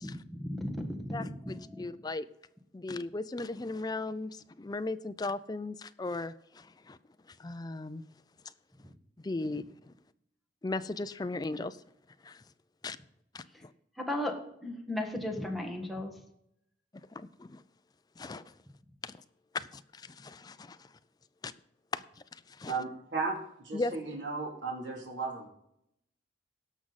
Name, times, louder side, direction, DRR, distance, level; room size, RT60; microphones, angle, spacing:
voice 1, 0.0-1.9 14.0-14.3 14.6-16.1, left 1 dB, ahead, 1 dB, 1.6 m, -35 dB
voice 2, 1.1-2.3 2.7-7.0 7.4-8.0 9.2-9.9 10.6-11.8 12.2-12.4 12.8-13.0 13.3-13.7 17.1-17.6 18.2-18.5 19.0-19.2 19.5-20.9 21.4-21.5 21.9-22.0 22.3-22.8 23.7-24.0, left 2 dB, 20° left, 12 dB, 0.4 m, -37 dB
voice 3, 22.7-23.3 23.6-25.5, right 4 dB, 90° right, -1 dB, 2.9 m, -35 dB
17.5 x 6.2 x 4.1 m, 0.77 s
head